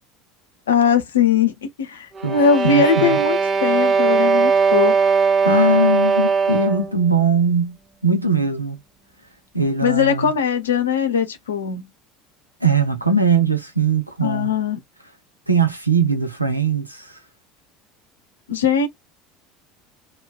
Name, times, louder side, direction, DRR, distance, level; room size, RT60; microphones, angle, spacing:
voice 1, 0.7-5.1 9.8-11.9 14.2-14.8 18.5-18.9, left 6 dB, 75° left, 0.6 m, -20 dB
sound 1, 2.2-6.9, right 5 dB, 30° right, 0.5 m, -18 dB
voice 2, 2.6-3.2 5.4-7.8 8.0-8.8 9.5-10.3 12.6-14.5 15.5-17.1, right 3 dB, 90° right, 0.6 m, -20 dB
3.0 x 2.3 x 2.2 m
figure-of-eight pair, 70°, 0 cm